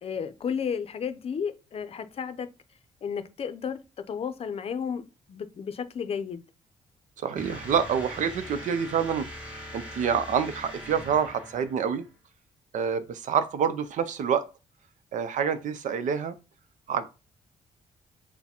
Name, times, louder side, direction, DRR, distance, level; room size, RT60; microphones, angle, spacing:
voice 1, 0.0-2.5 3.0-5.0 5.3-6.4, left 7 dB, 45° left, 0.6 m, -33 dB
voice 2, 7.2-9.3 9.7-12.0 12.7-14.5 15.1-16.4 16.9-17.1, right 7 dB, 70° right, 0.6 m, -27 dB
sound 1, 7.4-12.1, equal, 10° right, 1.9 m, -41 dB
5.7 x 2.1 x 4.3 m
cardioid pair, 110°, 14 cm